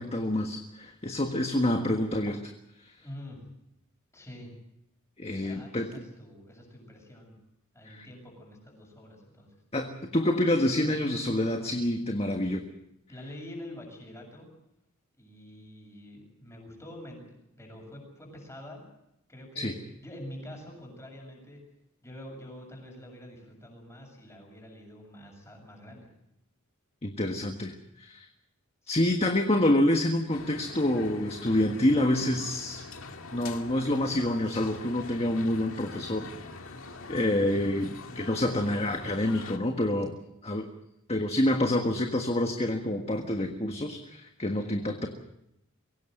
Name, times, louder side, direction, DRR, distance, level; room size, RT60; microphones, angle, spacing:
voice 1, 0.0-2.5 2.8-2.9 5.2-5.9 7.8-8.1 9.7-12.6 19.6-19.7 27.0-28.3 28.9-32.8 33.3-36.3 37.1-40.1 40.4-40.6 41.1-45.1, left 1 dB, 30° left, 4 dB, 1.6 m, -27 dB
voice 2, 3.0-3.4 4.1-4.5 5.4-7.4 7.7-9.5 13.1-14.5 15.2-17.2 17.6-18.8 19.3-19.7 20.0-21.6 22.0-26.1 28.8-29.2 44.5-44.9, left 1 dB, 15° left, 1 dB, 7.2 m, -46 dB
sound 1, 30.3-39.6, left 3 dB, 65° left, 2.0 m, -44 dB
23.5 x 17.0 x 7.8 m, 0.84 s
head